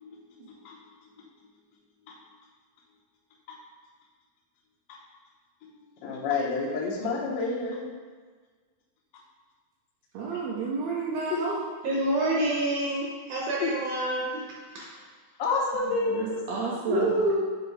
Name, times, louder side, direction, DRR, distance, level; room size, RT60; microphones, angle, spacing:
voice 1, 0.0-2.2 4.9-5.0 5.6-5.7 6.0-7.9 11.3-11.4 13.6-13.7 15.4-16.4 17.0-17.1, left 4 dB, 80° left, -4 dB, 1.3 m, -31 dB
voice 2, 10.1-11.6 16.1-17.2, right 4 dB, 85° right, -4 dB, 1.5 m, -31 dB
voice 3, 11.8-14.4 14.7-14.8 16.9-17.4, right 1 dB, 70° right, -4 dB, 2.1 m, -27 dB
7.9 x 2.7 x 4.6 m, 1.5 s
omnidirectional pair, 4.1 m